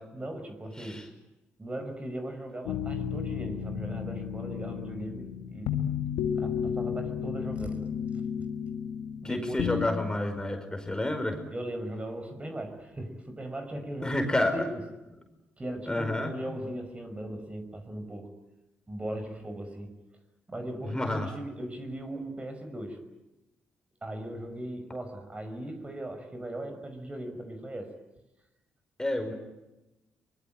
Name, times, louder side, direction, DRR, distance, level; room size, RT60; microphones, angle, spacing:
voice 1, 0.1-1.0 1.6-5.7 6.4-7.9 9.2-9.7 11.5-14.7 15.6-18.3 18.9-19.9 20.5-23.0 24.0-27.9, right 1 dB, 25° right, 6 dB, 5.6 m, -38 dB
sound 1, 2.7-9.9, left 8 dB, 80° left, 2.0 m, -33 dB
voice 2, 9.2-11.4 14.0-14.7 15.9-16.3 20.9-21.3 29.0-29.3, left 1 dB, 15° left, 5 dB, 5.2 m, -29 dB
24.0 x 21.5 x 9.0 m, 0.97 s
hypercardioid pair, 45°, 5 cm